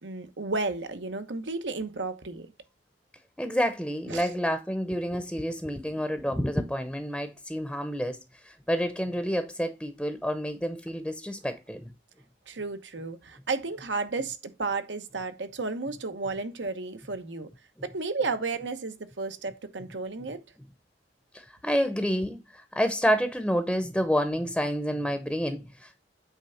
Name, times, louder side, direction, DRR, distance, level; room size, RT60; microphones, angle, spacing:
voice 1, 0.0-2.5 4.1-4.3 12.5-17.5 17.8-20.4, right 3 dB, 80° right, 1.0 m, -33 dB
voice 2, 3.4-8.2 8.4-11.9 21.3-26.0, equal, 5° left, 0.7 m, -29 dB
8.5 x 3.4 x 5.6 m
head